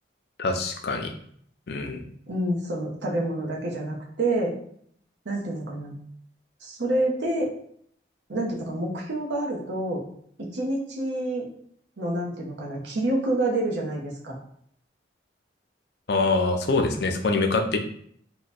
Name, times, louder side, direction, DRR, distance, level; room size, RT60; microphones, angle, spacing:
voice 1, 0.4-1.1 1.7-2.0 16.1-17.8, left 3 dB, 60° left, 5 dB, 0.4 m, -24 dB
voice 2, 2.3-4.5 5.2-6.0 6.6-7.5 8.3-10.0 10.4-11.5 12.0-14.4, right 1 dB, 80° right, -2 dB, 0.8 m, -28 dB
2.9 x 2.2 x 4.1 m, 0.64 s
head